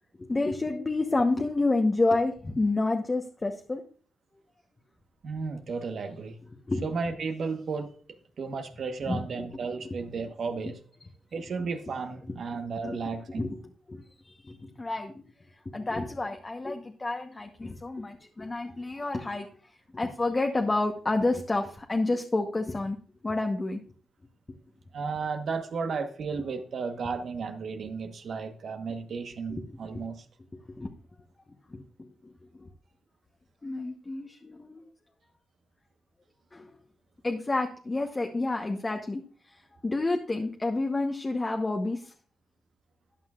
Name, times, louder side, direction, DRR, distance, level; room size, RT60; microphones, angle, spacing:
voice 1, 0.2-3.8 6.7-6.8 9.1-9.2 9.8-9.9 12.3-12.4 12.8-13.0 13.3-13.6 13.9-15.1 15.6-19.5 19.9-23.0 23.2-23.8 29.6-29.7 30.8-30.9 31.7-32.7 33.6-34.8 36.5-36.7 37.2-42.1, left 2 dB, 30° left, 1.0 m, -29 dB
voice 2, 5.2-6.4 6.8-7.9 8.4-10.8 11.3-13.5 24.9-30.2, right 4 dB, 65° right, 1.2 m, -34 dB
13.5 x 9.5 x 2.5 m
cardioid pair, 70°, 0 cm